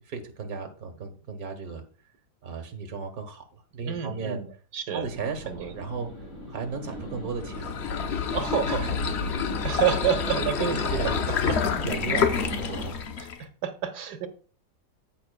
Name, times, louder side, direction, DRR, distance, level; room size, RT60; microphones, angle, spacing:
voice 1, 0.1-1.8 2.4-4.4 4.9-6.1 6.5-7.8 8.7-8.9 10.4-11.5 11.8-13.1, right 5 dB, 60° right, 6 dB, 1.8 m, -35 dB
voice 2, 3.8-5.1 5.5-5.7 8.3-8.9 9.6-11.1 11.5-11.6 13.2-14.3, right 9 dB, 75° right, 7 dB, 1.6 m, -29 dB
sound 1, 5.0-12.9, equal, 80° left, 3.5 m, -37 dB
sound 2, 7.4-13.4, left 6 dB, 55° left, 0.8 m, -28 dB
14.0 x 5.8 x 2.3 m, 0.40 s
omnidirectional pair, 1.8 m